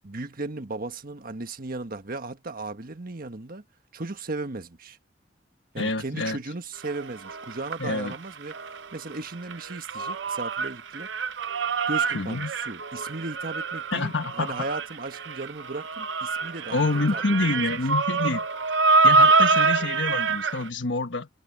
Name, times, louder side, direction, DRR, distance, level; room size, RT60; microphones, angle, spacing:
voice 1, 0.0-3.6 3.9-5.0 5.7-8.5 8.9-11.1 11.9-17.8, right 2 dB, 50° right, 1.5 m, -36 dB
voice 2, 5.8-6.4 7.8-8.1 12.1-12.5 13.9-14.5 16.7-18.5 19.0-21.3, left 3 dB, 80° left, 1.3 m, -27 dB
sound 1, 6.8-8.9 9.1-20.7, right 4 dB, 75° right, 0.7 m, -25 dB
head